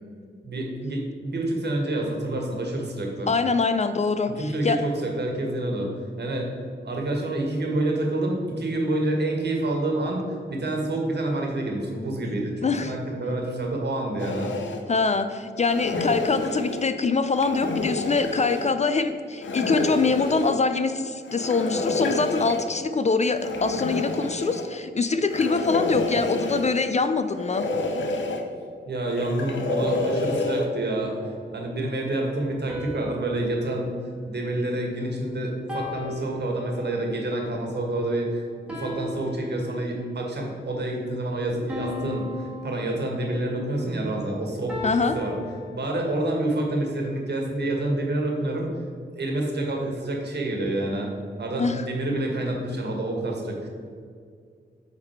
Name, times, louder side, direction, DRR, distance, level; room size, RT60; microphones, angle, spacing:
voice 1, 0.4-3.3 4.3-6.5 6.8-14.5 28.9-31.2 31.5-33.9 34.3-38.4 38.7-44.8 45.1-45.3 45.7-48.7 49.1-51.1 51.4-53.7, right 1 dB, 60° right, 1 dB, 1.5 m, -28 dB
voice 2, 3.3-4.8 12.6-12.9 14.9-27.6 44.8-45.2 51.6-51.8, left 4 dB, 35° left, 10 dB, 0.4 m, -24 dB
sound 1, 14.2-14.8 15.6-16.8 17.3-18.7 19.4-20.6 21.3-22.7 23.4-24.7 25.3-26.8 27.3-28.4 29.1-30.7, left 2 dB, 75° left, 0.8 m, -29 dB
sound 2, 30.3-31.5 32.7-35.1 35.7-37.2 38.7-40.2 41.7-43.6 44.7-46.3, left 1 dB, 5° right, 1.6 m, -37 dB
7.7 x 3.9 x 4.4 m, 2.1 s
cardioid pair, 70°, 20 cm